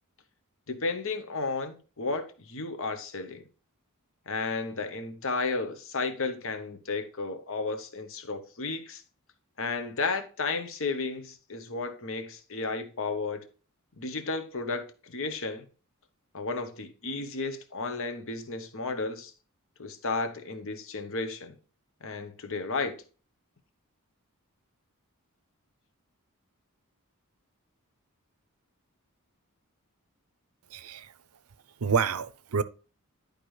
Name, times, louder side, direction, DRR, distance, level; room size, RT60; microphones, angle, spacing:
voice 1, 0.7-3.4 4.3-9.0 9.6-13.5 14.0-15.6 16.3-19.3 19.8-21.5 22.0-23.0, left 3 dB, 65° left, 1.1 m, -33 dB
voice 2, 30.7-31.1 31.8-32.6, right 6 dB, 75° right, 0.6 m, -28 dB
11.0 x 5.1 x 3.2 m
head